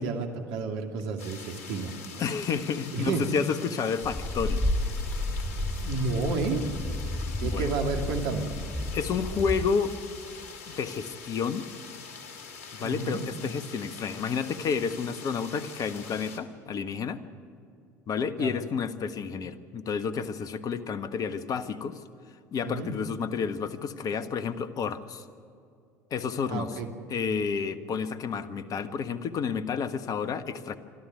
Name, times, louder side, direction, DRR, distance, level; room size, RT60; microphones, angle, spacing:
voice 1, 0.0-1.9 2.9-3.2 5.8-6.6 7.4-8.5 12.8-13.2 18.4-18.6 22.6-22.9 26.5-26.9, right 4 dB, 65° right, 4 dB, 2.5 m, -31 dB
sound 1, 1.2-16.4, left 5 dB, 70° left, 2.5 m, -44 dB
voice 2, 2.2-4.7 7.4-7.7 8.9-9.9 10.7-11.7 12.7-17.2 18.1-22.0 22.5-25.2 26.1-26.8 27.1-30.8, left 6 dB, 45° left, 12 dB, 1.4 m, -30 dB
sound 2, 4.0-9.7, left 1 dB, 20° left, 2.9 m, -31 dB
25.0 x 13.0 x 9.3 m, 2.5 s
hypercardioid pair, 65°, 9 cm